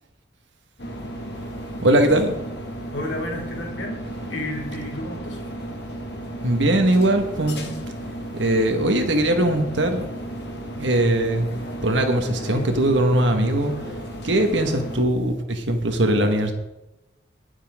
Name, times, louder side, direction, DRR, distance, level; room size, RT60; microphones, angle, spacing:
sound 1, 0.8-15.0, right 1 dB, 65° left, 1.9 m, -34 dB
voice 1, 1.8-2.3 6.4-7.9 8.3-10.1 10.8-16.5, right 1 dB, 80° right, 5 dB, 1.7 m, -21 dB
voice 2, 2.9-4.0 4.3-5.4, left 1 dB, 85° left, -1 dB, 3.0 m, -31 dB
19.5 x 7.3 x 3.7 m, 0.96 s
head